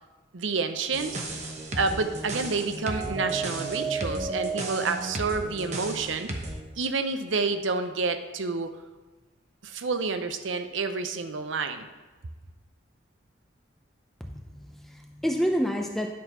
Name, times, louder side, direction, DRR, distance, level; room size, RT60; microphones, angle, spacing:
voice 1, 0.3-1.2 1.7-6.3 6.8-8.7 9.6-11.9, right 4 dB, 90° right, 9 dB, 0.7 m, -29 dB
sound 1, 0.9-6.6, right 3 dB, 35° right, 0.9 m, -33 dB
voice 2, 14.2-16.1, equal, ahead, 2 dB, 0.5 m, -29 dB
10.0 x 4.5 x 5.5 m, 1.2 s
head